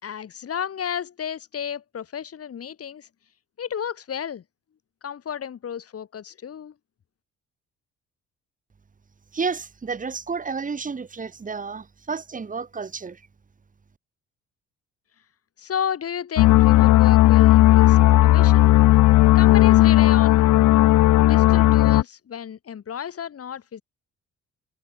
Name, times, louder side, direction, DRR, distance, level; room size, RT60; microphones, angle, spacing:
voice 1, 0.0-3.1 3.6-4.4 5.0-6.7 15.6-18.6 19.3-20.4 21.2-23.8, left 8 dB, 50° left, 2.9 m, -32 dB
voice 2, 9.3-13.2, right 5 dB, 25° right, 1.7 m, -31 dB
sound 1, 16.4-22.0, left 16 dB, 75° left, 0.7 m, -15 dB
cardioid pair, 90°, 30 cm